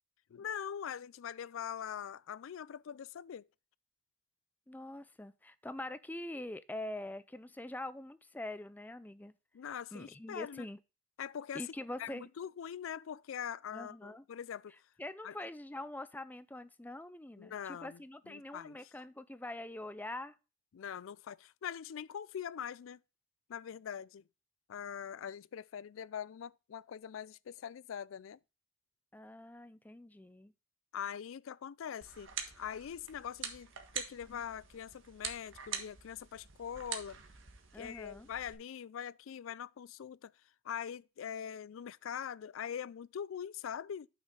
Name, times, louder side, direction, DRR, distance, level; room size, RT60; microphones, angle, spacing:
voice 1, 0.3-3.5 9.5-10.7 11.2-11.6 12.0-14.7 15.2-15.3 17.4-18.0 18.3-18.8 20.7-23.0 23.5-24.2 24.7-28.4 30.9-32.3 32.6-33.7 33.9-37.2 37.7-40.3 40.6-44.1, left 8 dB, 75° left, 0.4 m, -43 dB
voice 2, 4.7-9.3 9.9-10.8 11.5-12.3 13.7-14.2 15.0-20.4 29.1-30.5 37.7-38.3, left 1 dB, 10° left, 0.4 m, -44 dB
sound 1, 32.0-38.5, right 7 dB, 70° right, 1.5 m, -45 dB
8.7 x 6.3 x 3.8 m
head